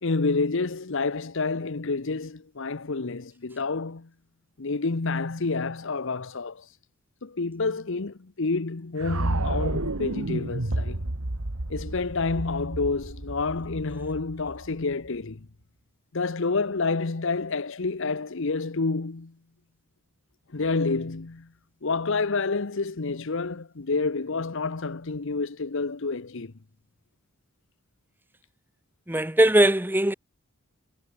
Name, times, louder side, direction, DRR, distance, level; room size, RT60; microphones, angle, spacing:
voice 1, 0.0-4.1 4.6-6.7 7.2-11.0 11.7-15.5 16.1-19.3 20.5-21.5 21.8-26.5, left 3 dB, 65° left, 0.9 m, -28 dB
sound 1, 9.0-15.1, right 2 dB, 85° right, 2.0 m, -31 dB
voice 2, 29.1-30.1, right 1 dB, 10° right, 1.3 m, -20 dB
head